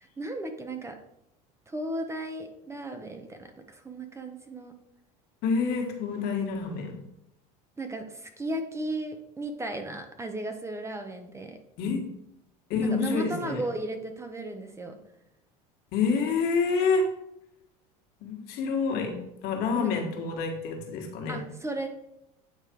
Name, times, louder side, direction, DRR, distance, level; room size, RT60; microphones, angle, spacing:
voice 1, 0.0-1.0 1.7-4.7 7.8-11.6 12.8-15.0 19.7-20.0 21.3-21.9, right 2 dB, 15° right, 6 dB, 0.7 m, -35 dB
voice 2, 5.4-7.0 11.8-12.0 12.7-13.6 15.9-17.1 18.2-19.1 19.4-21.4, left 5 dB, 60° left, 1 dB, 1.7 m, -27 dB
8.9 x 3.2 x 4.5 m, 0.83 s
supercardioid pair, 105°, 19 cm